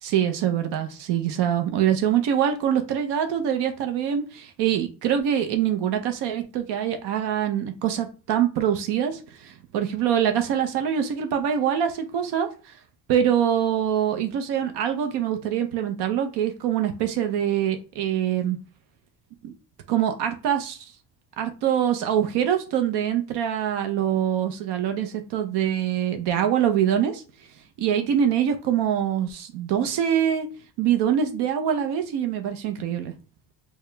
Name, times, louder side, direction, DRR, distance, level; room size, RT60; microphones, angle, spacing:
voice 1, 0.0-12.5 13.1-18.6 19.4-19.5 19.9-20.8 21.4-27.2 27.8-30.5 30.8-33.1, right 9 dB, 75° right, 6 dB, 0.7 m, -24 dB
4.7 x 2.3 x 3.2 m, 0.34 s
cardioid pair, 165°, 41 cm